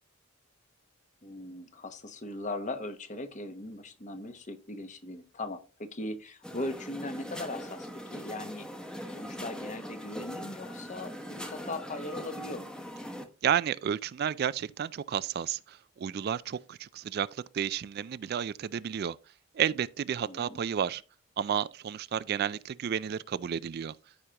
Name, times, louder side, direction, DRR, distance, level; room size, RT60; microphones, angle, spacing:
voice 1, 1.2-8.7 9.0-12.7 20.2-20.6, left 2 dB, 35° left, 1.0 m, -39 dB
sound 1, 6.4-13.2, equal, 5° left, 0.9 m, -41 dB
voice 2, 13.4-19.2 19.5-21.0 21.4-24.0, right 8 dB, 50° right, 0.3 m, -31 dB
14.0 x 5.0 x 2.9 m
head